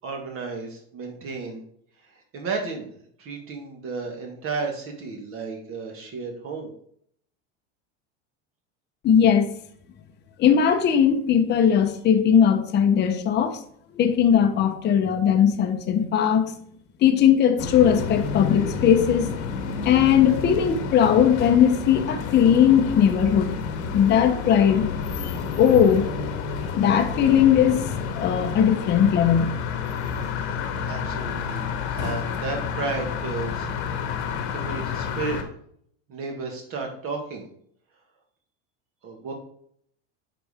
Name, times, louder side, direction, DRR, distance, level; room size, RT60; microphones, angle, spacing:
voice 1, 0.0-1.6 2.0-2.9 3.2-6.7 30.8-33.7 34.5-35.4 36.1-37.5 39.0-39.3, right 4 dB, 40° right, 1.7 m, -33 dB
voice 2, 9.0-9.5 10.4-13.6 13.9-16.5 17.0-19.4 19.8-23.5 23.9-24.9 25.6-26.1 26.8-29.5, left 8 dB, 30° left, 0.9 m, -19 dB
sound 1, 17.6-35.4, left 6 dB, 85° left, 1.5 m, -30 dB
10.0 x 4.3 x 3.5 m
supercardioid pair, 140°, 34 cm